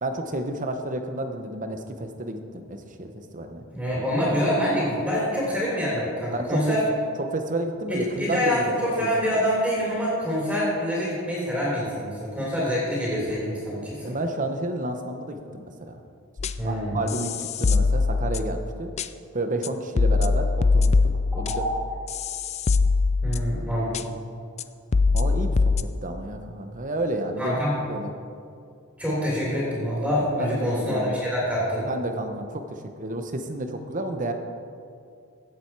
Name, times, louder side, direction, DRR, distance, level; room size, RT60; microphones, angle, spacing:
voice 1, 0.0-3.6 3.9-4.1 6.3-6.8 7.2-8.7 9.0-9.4 14.0-16.0 16.6-18.9 19.3-21.0 21.4-21.6 25.1-25.7 26.0-27.6 27.9-28.1 30.4-31.2 31.9-34.3, right 1 dB, 35° right, 6 dB, 1.0 m, -31 dB
voice 2, 3.7-6.8 7.9-14.1 16.6-17.0 21.5-21.6 23.2-24.0 27.4-27.8 29.0-31.9, equal, 5° right, -7 dB, 3.3 m, -26 dB
sound 1, 16.4-16.7 17.1-18.6 19.0-19.1 19.6-19.7 20.0-23.6 23.9-24.0 24.6-24.7 24.9-25.8, left 4 dB, 30° left, 0.3 m, -22 dB
16.5 x 7.7 x 4.7 m, 2.4 s
head